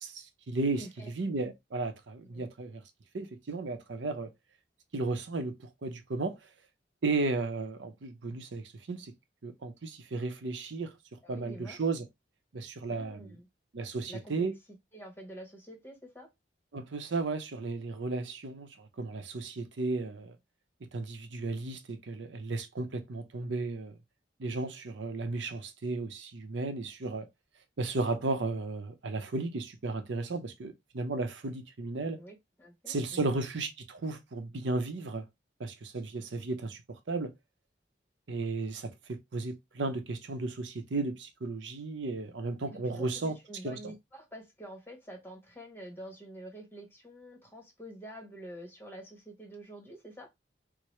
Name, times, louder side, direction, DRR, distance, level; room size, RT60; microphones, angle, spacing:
voice 1, 0.0-0.8 1.2-2.8 3.1-4.3 4.9-6.4 7.0-9.1 9.4-10.9 11.3-12.1 12.5-13.3 13.7-14.5 16.7-20.4 20.9-23.9 24.4-27.3 27.8-32.2 32.9-35.2 35.6-36.8 37.1-37.3 38.3-43.4 43.6-43.8, right 3 dB, 80° right, 0.6 m, -34 dB
voice 2, 0.8-1.1 2.3-2.5 11.2-11.8 12.9-13.5 14.1-14.5 14.9-16.3 32.1-33.4 42.7-50.3, right 1 dB, 10° left, 1.0 m, -47 dB
4.6 x 2.0 x 3.1 m
head